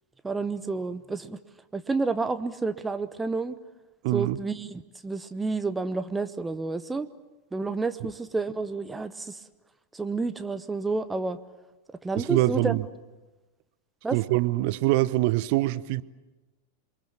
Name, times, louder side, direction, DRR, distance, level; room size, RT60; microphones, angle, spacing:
voice 1, 0.2-1.4 1.7-3.6 4.1-7.1 7.5-9.4 9.9-11.4 11.9-12.8 14.0-14.2, right 3 dB, 10° right, 0.9 m, -30 dB
voice 2, 4.0-4.4 8.0-8.1 12.2-12.8 14.1-16.0, right 18 dB, 50° right, 0.9 m, -24 dB
28.0 x 23.5 x 7.4 m
figure-of-eight pair, 90°, 0 cm